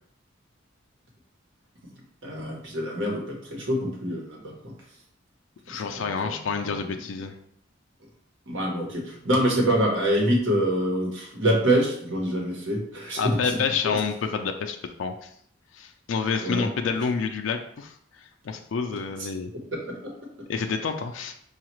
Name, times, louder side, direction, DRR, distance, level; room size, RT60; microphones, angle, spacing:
voice 1, 1.9-4.7 5.7-7.0 8.5-14.0 16.4-16.7 19.7-20.0, right 1 dB, 85° right, -1 dB, 1.2 m, -26 dB
voice 2, 5.7-7.3 13.2-15.3 15.7-17.9 18.4-19.5 20.5-21.3, left 5 dB, 85° left, 5 dB, 0.4 m, -28 dB
5.6 x 2.4 x 3.0 m, 0.66 s
head